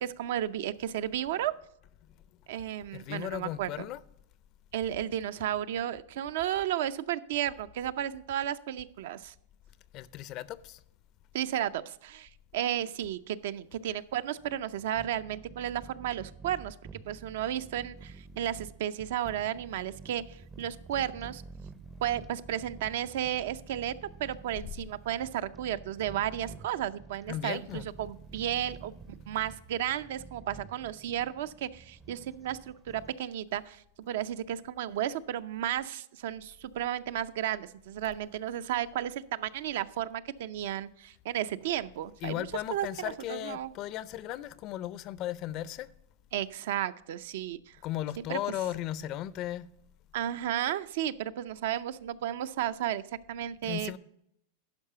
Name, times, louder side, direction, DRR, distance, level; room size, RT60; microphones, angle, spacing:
voice 1, 0.0-1.5 2.5-3.7 4.7-9.3 11.3-21.4 22.0-28.9 29.3-43.7 46.3-47.8 48.3-48.4 50.1-53.0 53.3-53.9, right 11 dB, 70° right, 0.5 m, -33 dB
voice 2, 2.9-4.0 9.9-10.8 27.3-27.9 42.2-45.9 47.8-49.7 53.6-54.0, left 13 dB, 40° left, 0.4 m, -36 dB
sound 1, 13.7-33.2, right 4 dB, 15° right, 0.5 m, -49 dB
11.5 x 4.9 x 5.6 m
supercardioid pair, 140°, 0 cm